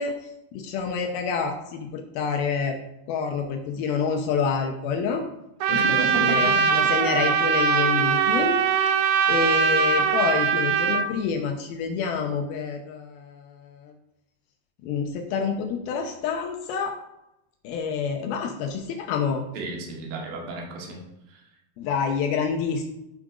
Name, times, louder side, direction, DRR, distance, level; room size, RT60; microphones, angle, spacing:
voice 1, 0.0-2.8 3.1-5.2 5.7-8.6 8.9-9.0 9.3-13.9 14.8-17.0 17.6-19.4 21.8-22.8, left 6 dB, 80° left, 3 dB, 2.8 m, -28 dB
Trumpet, 5.6-11.1, right 6 dB, 85° right, 1.7 m, -21 dB
voice 2, 5.7-6.9 19.5-21.0 21.3-21.4, right 3 dB, 65° right, -1 dB, 3.6 m, -32 dB
15.0 x 5.2 x 4.9 m, 0.88 s
omnidirectional pair, 4.4 m